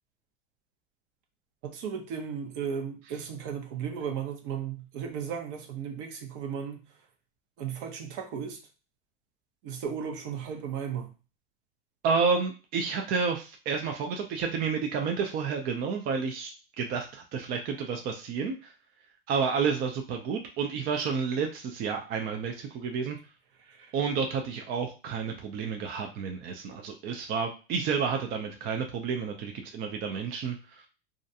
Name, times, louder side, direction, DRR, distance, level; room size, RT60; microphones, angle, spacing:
voice 1, 1.6-6.8 7.6-8.6 9.6-11.1 23.7-23.9, right 7 dB, 55° right, 3 dB, 0.8 m, -35 dB
voice 2, 12.0-16.5 16.8-18.7 19.3-23.2 23.9-30.8, right 5 dB, 30° right, 3 dB, 0.4 m, -30 dB
2.4 x 2.2 x 2.7 m, 0.32 s
supercardioid pair, 120°, 31 cm